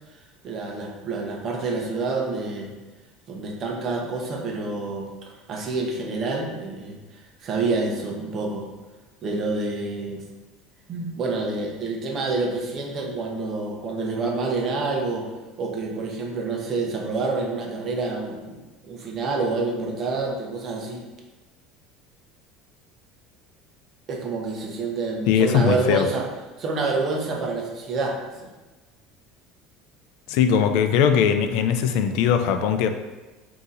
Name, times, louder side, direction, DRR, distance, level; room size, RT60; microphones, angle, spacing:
voice 1, 0.4-2.7 3.3-5.1 5.5-7.0 7.4-8.7 9.2-10.2 10.9-15.3 15.6-21.0 24.1-26.2 26.6-28.5, right 3 dB, 35° right, 0 dB, 0.8 m, -27 dB
voice 2, 25.3-26.1 30.3-32.9, left 7 dB, 70° left, 8 dB, 0.4 m, -20 dB
3.8 x 2.8 x 4.0 m, 1.2 s
cardioid pair, 140°, 0 cm